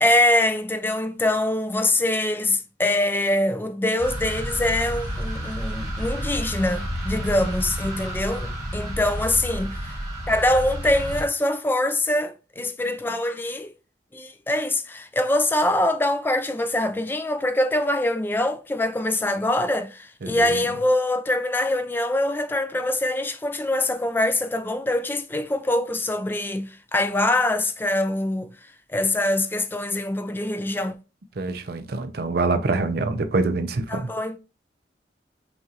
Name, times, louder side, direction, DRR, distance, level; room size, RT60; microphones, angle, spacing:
voice 1, 0.0-9.9 10.3-13.7 14.1-28.5 28.9-31.0 33.9-34.4, left 1 dB, 10° left, 0.3 m, -24 dB
sound 1, 4.0-11.2, equal, 20° right, 1.3 m, -30 dB
voice 2, 31.4-34.1, right 3 dB, 55° right, 0.5 m, -25 dB
5.7 x 2.4 x 2.8 m
head